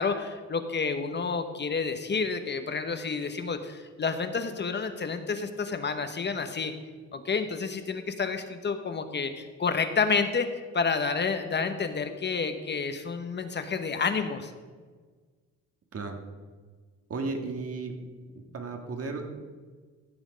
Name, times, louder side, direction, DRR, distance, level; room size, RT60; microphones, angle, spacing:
voice 1, 0.0-6.7 7.1-14.5, left 5 dB, 35° left, 8 dB, 0.9 m, -29 dB
voice 2, 17.1-18.0 18.3-19.4, right 3 dB, 50° right, 4 dB, 1.8 m, -34 dB
15.5 x 6.3 x 5.1 m, 1.5 s
cardioid pair, 90°, 30 cm